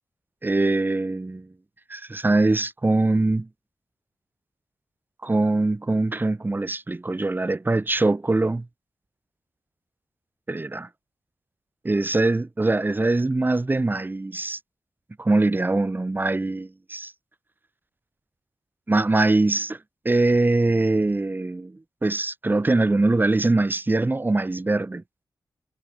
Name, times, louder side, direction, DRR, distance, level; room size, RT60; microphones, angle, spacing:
voice 1, 0.4-1.5 1.9-3.5 5.2-8.7 10.5-10.9 11.8-14.6 15.2-17.1 18.9-19.8 20.1-25.0, right 2 dB, 25° right, 1.8 m, -22 dB
cardioid pair, 70°, 8 cm